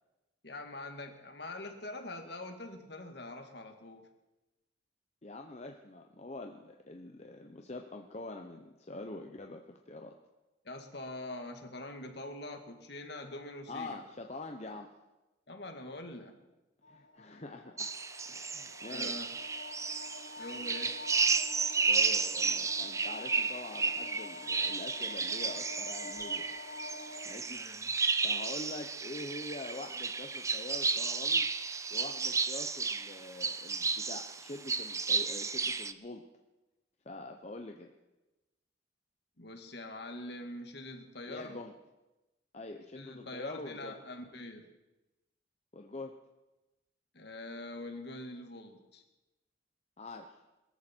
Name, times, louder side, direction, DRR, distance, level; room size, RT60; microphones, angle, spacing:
voice 1, 0.4-4.1 10.6-14.0 15.5-16.4 18.9-19.3 20.4-21.0 27.5-27.9 39.4-41.6 43.0-44.7 47.1-49.0, left 2 dB, 55° left, 5 dB, 2.0 m, -44 dB
voice 2, 5.2-10.1 13.7-14.9 16.9-17.9 18.2-19.4 21.9-26.5 27.2-27.6 28.2-31.5 31.9-36.2 37.0-37.9 41.3-41.7 42.5-43.9 45.7-46.1 50.0-50.4, left 2 dB, 35° left, 3 dB, 0.9 m, -45 dB
sound 1, 16.8-27.5, left 3 dB, 75° left, 1.3 m, -47 dB
sound 2, 17.8-35.9, right 5 dB, 15° right, 0.4 m, -33 dB
22.0 x 14.0 x 4.5 m, 1.0 s
head